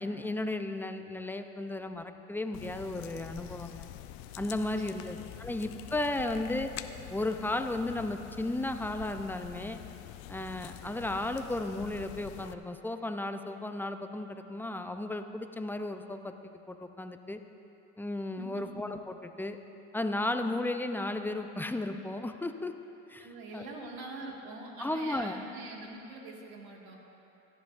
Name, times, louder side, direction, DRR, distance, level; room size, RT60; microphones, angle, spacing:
voice 1, 0.0-3.9 4.4-6.7 7.1-9.8 10.3-16.3 16.7-17.4 18.0-19.6 19.9-22.7 23.1-23.3 23.5-23.7 24.8-25.4, left 2 dB, 5° left, 7 dB, 0.6 m, -34 dB
sound 1, 2.5-12.5, left 12 dB, 70° left, 0.6 m, -46 dB
voice 2, 4.6-5.1 5.4-5.5 18.4-18.6 23.2-27.0, right 2 dB, 65° right, -1 dB, 2.0 m, -44 dB
17.5 x 12.0 x 2.6 m, 2.9 s
hypercardioid pair, 70°, 38 cm